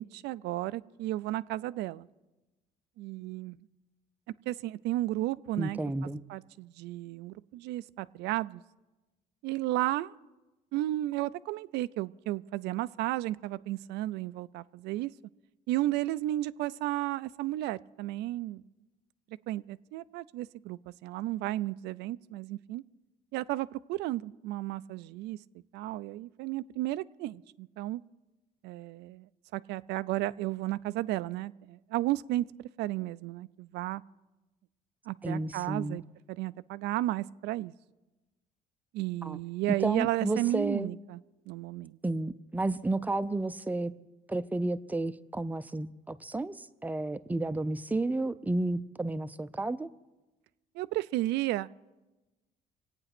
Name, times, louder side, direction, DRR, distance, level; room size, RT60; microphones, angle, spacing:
voice 1, 0.0-2.1 3.0-3.6 4.5-5.8 6.3-8.6 9.4-10.1 10.7-15.1 15.7-18.6 19.5-22.8 23.3-25.4 25.7-28.0 28.6-32.4 32.8-34.0 35.1-36.0 36.3-37.7 38.9-41.2 41.5-42.0 50.7-51.7, right 16 dB, 85° right, 0.5 m, -33 dB
voice 2, 5.6-6.2 35.2-36.0 39.2-39.4 39.8-40.9 42.0-43.9 44.3-49.9, right 2 dB, 10° right, 0.6 m, -32 dB
25.0 x 8.9 x 6.0 m
cardioid pair, 110°, 17 cm